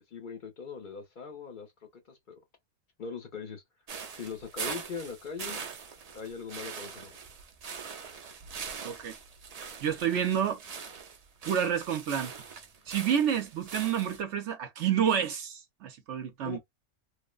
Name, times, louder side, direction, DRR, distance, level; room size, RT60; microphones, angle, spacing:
voice 1, 0.1-1.7 2.1-2.4 3.0-3.6 4.1-5.7 6.1-7.2 16.4-16.6, left 5 dB, 45° left, 0.7 m, -41 dB
sound 1, 3.9-14.2, right 6 dB, 85° right, 0.3 m, -42 dB
voice 2, 8.8-9.1 9.8-10.6 11.4-12.3 12.9-16.6, right 8 dB, 70° right, 0.9 m, -29 dB
3.1 x 2.0 x 2.3 m
omnidirectional pair, 1.3 m